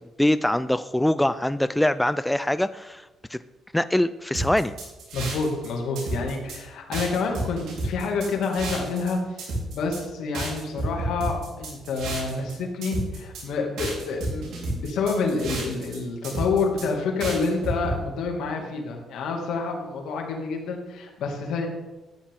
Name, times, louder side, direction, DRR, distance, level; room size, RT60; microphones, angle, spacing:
voice 1, 0.2-3.0 3.3-3.4 3.7-4.7, left 1 dB, 5° left, 13 dB, 0.3 m, -23 dB
sound 1, 4.3-5.7 6.0-6.6 6.9-9.1 9.4-10.0 10.3-12.5 12.8-13.4 13.8-16.0 16.2-16.9 17.2-18.0, right 2 dB, 80° right, 4.1 m, -31 dB
voice 2, 5.1-21.7, left 4 dB, 80° left, 2 dB, 2.3 m, -28 dB
13.0 x 9.3 x 3.7 m, 1.1 s
cardioid pair, 90°, 0 cm